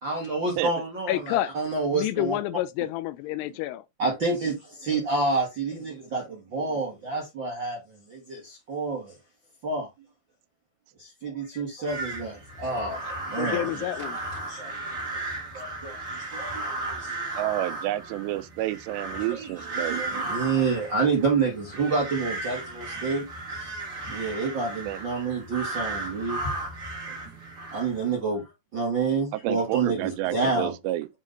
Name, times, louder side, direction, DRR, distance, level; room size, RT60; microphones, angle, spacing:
voice 1, 0.0-2.4 3.4-3.5 4.0-6.2 6.5-9.1 9.6-9.9 11.0-14.8 15.5-17.1 19.3-23.2 24.1-26.4 27.7-30.7, right 4 dB, 60° right, 1.2 m, -29 dB
voice 2, 1.1-1.5 1.9-3.8 13.4-14.2, left 14 dB, 80° left, 2.6 m, -29 dB
sound 1, 11.8-28.1, right 2 dB, 35° right, 1.3 m, -35 dB
voice 3, 17.4-20.0 24.9-25.0 29.3-31.1, right 15 dB, 90° right, 2.8 m, -30 dB
7.3 x 3.6 x 3.8 m
omnidirectional pair, 4.8 m